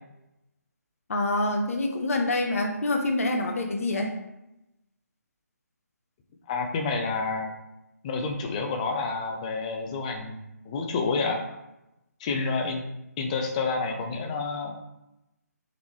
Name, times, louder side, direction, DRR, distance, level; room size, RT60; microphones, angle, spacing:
voice 1, 1.1-4.1, left 2 dB, 55° left, 3 dB, 0.9 m, -26 dB
voice 2, 6.5-7.6 8.0-10.4 10.7-11.4 12.2-12.8 13.2-14.7, left 4 dB, 25° left, 3 dB, 0.5 m, -29 dB
3.9 x 3.5 x 3.1 m, 0.91 s
figure-of-eight pair, 150°, 9 cm